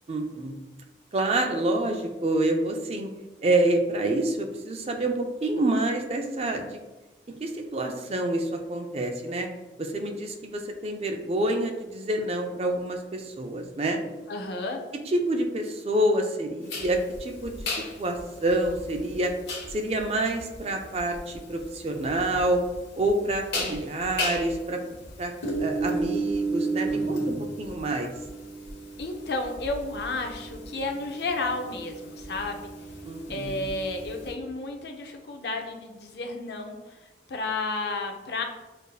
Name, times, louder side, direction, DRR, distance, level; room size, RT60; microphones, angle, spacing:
voice 1, 0.1-0.5 1.1-3.1 3.4-6.8 7.4-9.5 9.8-14.0 15.1-19.3 19.7-22.6 23.0-24.8 25.2-25.3 25.6-28.1 33.0-33.6, right 1 dB, 35° right, 3 dB, 0.4 m, -27 dB
voice 2, 14.3-14.8 29.0-32.7 33.3-36.8 37.3-38.4, left 2 dB, 65° left, 4 dB, 0.5 m, -32 dB
sound 1, 16.7-34.3, right 1 dB, 80° left, 1.1 m, -34 dB
6.5 x 2.6 x 2.3 m, 1.1 s
head